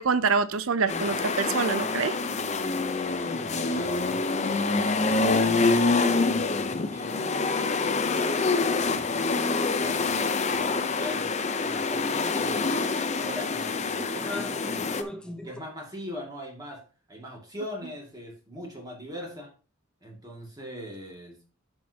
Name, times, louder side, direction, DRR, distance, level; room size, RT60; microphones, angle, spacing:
voice 1, 0.0-2.2, right 5 dB, 90° right, 14 dB, 0.6 m, -25 dB
sound 1, 0.9-15.0, left 3 dB, 35° left, 0.7 m, -26 dB
voice 2, 3.2-4.9 6.9-8.5 8.8-9.4 9.8-11.3 11.6-14.9 15.4-16.8 17.1-19.5 20.0-21.4, left 1 dB, 20° right, -1 dB, 2.2 m, -41 dB
sound 2, 11.0-11.2 11.6-11.7 12.2-13.1 13.4-13.7 14.1-15.6, left 1 dB, 5° left, 0.8 m, -40 dB
10.5 x 6.2 x 2.8 m, 0.37 s
head